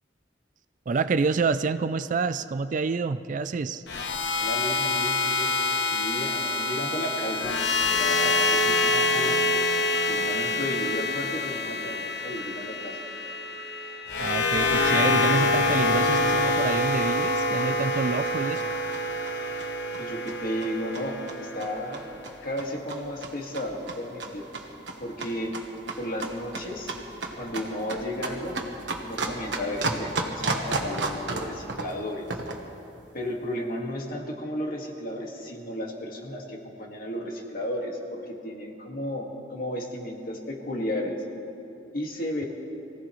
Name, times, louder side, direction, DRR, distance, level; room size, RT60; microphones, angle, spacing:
voice 1, 0.9-3.8 14.2-18.6, right 4 dB, 45° right, 13 dB, 0.4 m, -27 dB
sound 1, 3.9-22.0, left 2 dB, 75° left, 1.0 m, -26 dB
voice 2, 4.4-9.5 10.1-13.0 19.3-19.5 20.0-22.1 22.4-24.5 25.0-25.5 26.0-26.9 27.3-28.6 29.0-32.3 33.1-41.2 41.9-42.5, left 1 dB, 55° left, 0 dB, 1.9 m, -33 dB
sound 2, 17.3-32.7, right 3 dB, 80° right, 1.3 m, -35 dB
24.0 x 16.5 x 3.2 m, 2.8 s
head